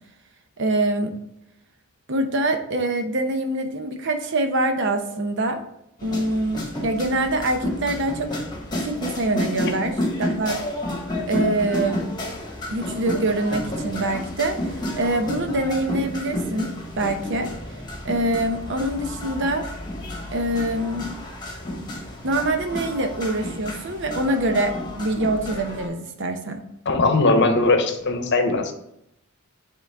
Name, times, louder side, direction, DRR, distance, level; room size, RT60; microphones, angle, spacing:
voice 1, 0.6-1.1 2.1-5.6 6.0-8.3 8.8-10.6 11.3-12.0 12.7-16.7 17.0-17.5 18.0-19.7 20.3-21.1 22.2-26.6, right 1 dB, 55° right, 6 dB, 0.8 m, -24 dB
sound 1, 6.0-25.9, left 1 dB, 20° left, 1.2 m, -31 dB
voice 2, 26.9-28.7, left 2 dB, 55° left, 6 dB, 0.9 m, -19 dB
8.1 x 3.8 x 3.5 m, 0.80 s
head